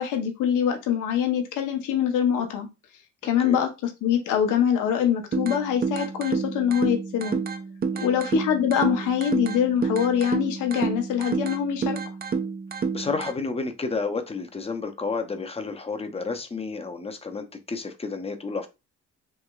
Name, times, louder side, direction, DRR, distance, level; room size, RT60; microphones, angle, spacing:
voice 1, 0.0-2.7 3.2-7.4 8.0-12.0, left 8 dB, 85° left, 0.8 m, -24 dB
sound 1, 5.3-13.3, right 5 dB, 30° right, 0.5 m, -30 dB
voice 2, 7.9-8.3 12.9-18.7, left 4 dB, 20° left, 0.6 m, -31 dB
3.1 x 2.9 x 2.3 m
cardioid pair, 90°, 30 cm